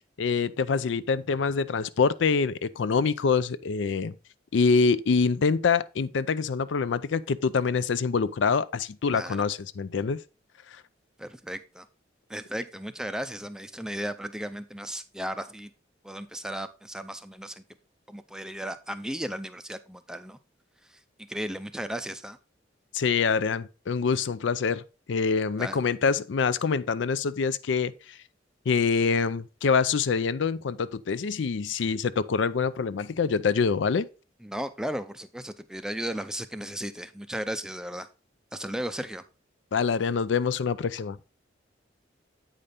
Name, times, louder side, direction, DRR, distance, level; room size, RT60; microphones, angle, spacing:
voice 1, 0.2-4.1 4.5-10.2 22.9-24.8 25.1-28.2 28.7-34.1 39.7-41.2, left 5 dB, 70° left, 0.4 m, -25 dB
voice 2, 9.1-9.4 11.2-11.9 12.3-15.7 16.0-17.6 18.1-20.4 20.8-21.0 21.3-22.4 25.6-25.8 34.4-38.1 38.5-39.2, equal, 5° right, 0.4 m, -35 dB
8.7 x 5.1 x 4.0 m
head